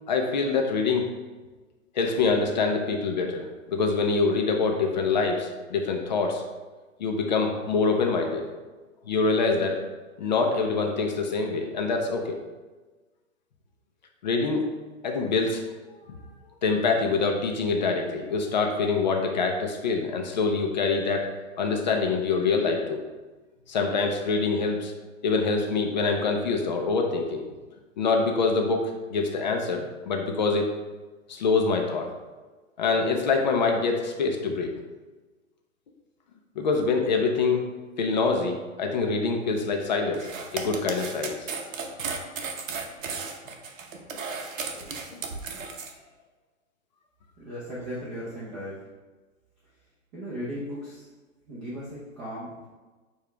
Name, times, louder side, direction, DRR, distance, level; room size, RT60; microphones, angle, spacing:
voice 1, 0.1-1.1 1.9-6.4 7.0-8.4 9.1-9.8 10.2-12.4 14.2-14.7 15.0-15.6 15.9-16.2 16.6-21.3 21.6-23.0 23.7-24.9 25.2-27.4 28.0-30.8 31.3-32.1 32.8-34.7 36.6-37.6 38.0-41.5 44.1-44.2 44.7-45.2, left 4 dB, 35° left, 3 dB, 0.4 m, -25 dB
sound 1, 40.1-45.9, right 5 dB, 70° right, 0.8 m, -34 dB
voice 2, 47.4-48.8 50.1-51.1 51.5-52.7, equal, 25° right, -7 dB, 0.7 m, -36 dB
6.8 x 2.4 x 3.2 m, 1.3 s
hypercardioid pair, 150°, 40 cm